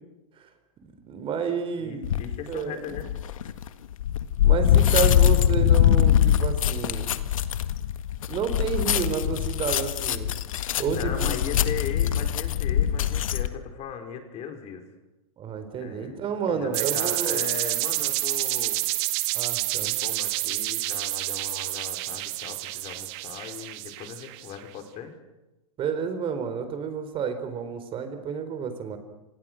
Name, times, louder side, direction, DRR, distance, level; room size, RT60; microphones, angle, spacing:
voice 1, 1.0-3.0 4.4-7.1 8.3-10.3 10.8-11.4 15.4-17.4 19.3-20.0 25.8-29.0, right 6 dB, 30° right, 9 dB, 4.2 m, -30 dB
voice 2, 1.8-3.1 10.9-14.8 15.8-18.8 19.8-25.1, left 8 dB, 35° left, 5 dB, 5.3 m, -38 dB
sound 1, 2.0-2.4 3.0-13.5, left 10 dB, 70° left, 1.8 m, -23 dB
sound 2, 16.7-24.5, right 20 dB, 50° right, 2.0 m, -29 dB
29.5 x 26.5 x 6.5 m, 0.98 s
hypercardioid pair, 110°, 18 cm